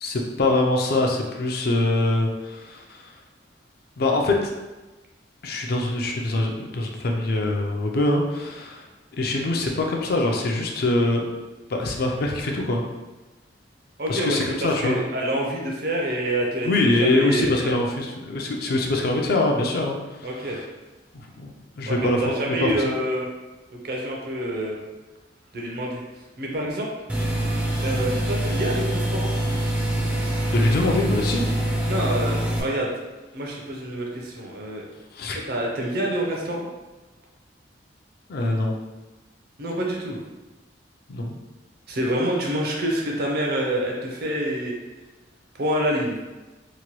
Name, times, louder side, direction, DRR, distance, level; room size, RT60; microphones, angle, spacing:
voice 1, 0.0-3.1 4.0-4.5 5.4-8.9 9.1-11.2 11.7-12.8 14.1-15.0 16.6-20.6 21.1-23.0 30.5-31.4 35.1-35.4 38.3-38.8 41.1-41.4, left 2 dB, 55° left, 1 dB, 0.4 m, -24 dB
voice 2, 14.0-14.4 14.8-16.7 17.0-17.8 20.2-20.6 21.8-23.3 23.7-24.8 25.5-26.0 26.4-26.9 27.8-29.3 31.9-32.9 33.3-34.9 35.3-36.7 39.6-40.2 41.9-44.7 45.6-46.2, right 1 dB, 55° right, -1 dB, 0.6 m, -27 dB
sound 1, 27.1-32.6, right 1 dB, 10° right, 0.4 m, -25 dB
2.9 x 2.2 x 2.9 m, 1.1 s
head